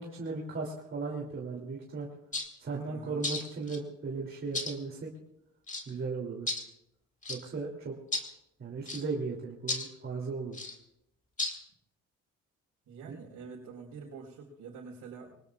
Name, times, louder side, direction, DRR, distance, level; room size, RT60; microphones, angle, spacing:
voice 1, 0.0-2.1 2.6-5.1 5.9-6.5 7.3-8.0 8.6-10.6, right 4 dB, 40° right, -2 dB, 3.0 m, -36 dB
sound 1, 2.3-2.5 3.2-3.8 4.5-4.7 5.7-5.9 6.5-6.6 7.2-7.4 8.1-8.3 8.9-9.0 9.7-9.9 10.5-10.8 11.4-11.6, left 2 dB, 25° left, 2.1 m, -34 dB
voice 2, 2.8-3.2 12.9-15.4, right 5 dB, 85° right, -6 dB, 4.5 m, -46 dB
25.0 x 19.5 x 2.4 m, 0.80 s
cardioid pair, 90°, 30 cm